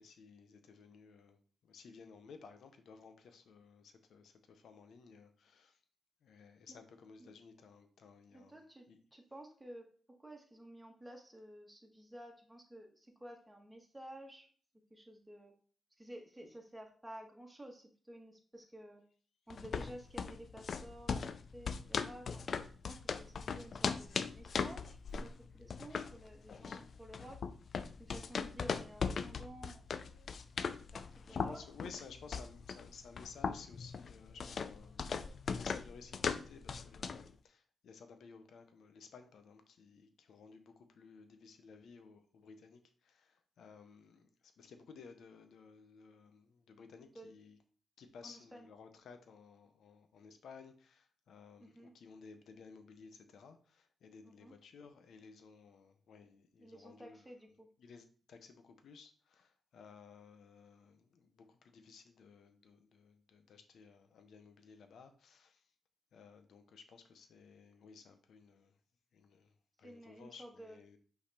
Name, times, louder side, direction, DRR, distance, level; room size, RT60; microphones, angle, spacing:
voice 1, 0.0-5.8 6.2-8.6 8.9-9.0 26.6-26.8 31.3-47.6 48.0-57.2 57.8-65.7 66.1-68.8 69.1-71.0, left 5 dB, 80° left, 0.9 m, -56 dB
voice 2, 8.3-9.9 10.2-14.5 14.9-15.6 16.0-19.1 19.5-22.5 22.8-27.4 28.0-29.8 30.9-31.9 47.1-47.3 48.2-48.7 51.6-51.9 54.2-54.5 56.6-57.7 69.8-71.0, right 1 dB, 10° right, 1.7 m, -53 dB
sound 1, 19.5-37.3, left 5 dB, 60° left, 0.4 m, -39 dB
5.7 x 4.1 x 4.2 m
cardioid pair, 75°, 0 cm